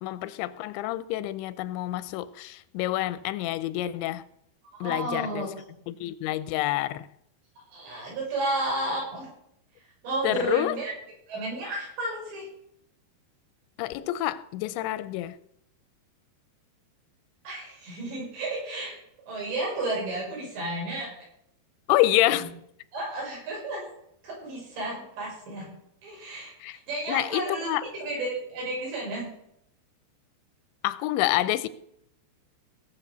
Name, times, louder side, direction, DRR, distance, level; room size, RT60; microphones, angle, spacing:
voice 1, 0.0-4.2 4.8-5.5 5.9-7.1 10.2-10.8 13.8-15.4 21.9-22.5 26.6-26.8 27.1-27.8 30.8-31.7, left 15 dB, 85° left, 3.0 m, -27 dB
voice 2, 4.7-5.5 7.7-9.3 9.8-10.9 11.3-12.5 17.5-18.9 19.3-21.1 22.2-22.5 22.9-23.8 24.2-25.7 26.0-29.3, right 2 dB, 75° right, 8.7 m, -32 dB
18.0 x 6.7 x 6.8 m
omnidirectional pair, 5.1 m